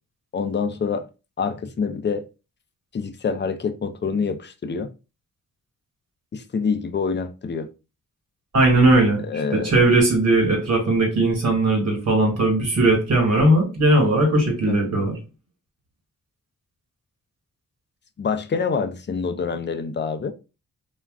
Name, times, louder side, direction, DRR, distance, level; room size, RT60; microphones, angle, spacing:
voice 1, 0.3-1.1 1.4-2.3 2.9-4.9 6.3-7.7 9.2-9.7 14.7-15.0 18.2-20.3, left 5 dB, 35° left, 0.4 m, -26 dB
voice 2, 8.5-15.1, right 2 dB, 55° right, 1.3 m, -18 dB
2.3 x 2.2 x 3.4 m
cardioid pair, 70°, 33 cm